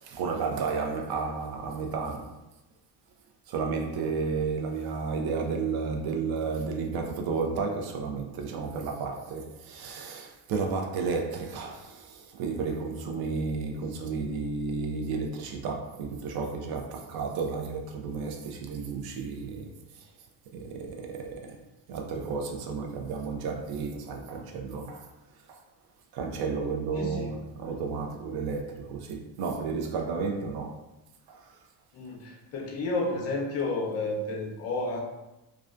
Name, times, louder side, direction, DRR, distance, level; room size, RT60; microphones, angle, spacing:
voice 1, 0.0-2.4 3.5-19.7 20.5-21.6 21.9-25.1 25.5-25.6 26.1-30.8 31.3-31.6, right 4 dB, 60° right, 0.5 m, -32 dB
voice 2, 26.9-27.3 31.9-35.0, left 2 dB, 35° left, 0.5 m, -31 dB
2.3 x 2.1 x 2.4 m
cardioid pair, 110°, 43 cm